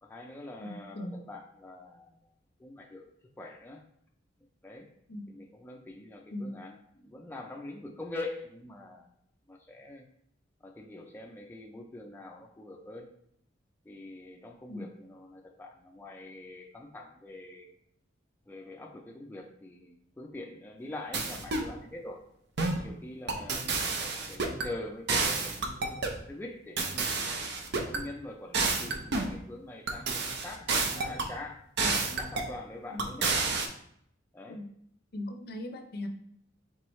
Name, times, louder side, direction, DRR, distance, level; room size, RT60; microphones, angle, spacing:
voice 1, 0.0-2.3 2.6-3.1 3.4-3.8 4.6-4.9 5.3-9.1 9.5-10.0 10.6-13.1 13.9-17.7 18.5-22.2 22.8-31.6 32.2-33.3 34.3-34.6, left 2 dB, 10° left, 0 dB, 0.4 m, -44 dB
voice 2, 0.6-1.2 5.1-5.3 6.3-6.7 14.7-14.9 31.8-32.0 32.9-33.0 34.5-34.7 35.1-36.1, left 1 dB, 55° left, 5 dB, 0.6 m, -39 dB
sound 1, 21.1-21.7 22.6-22.9 23.3-24.7 25.1-26.2 26.8-28.0 28.5-29.4 29.9-31.3 31.8-32.5 33.0-33.7, right 3 dB, 60° right, 0.6 m, -30 dB
4.6 x 3.6 x 3.1 m, 0.70 s
head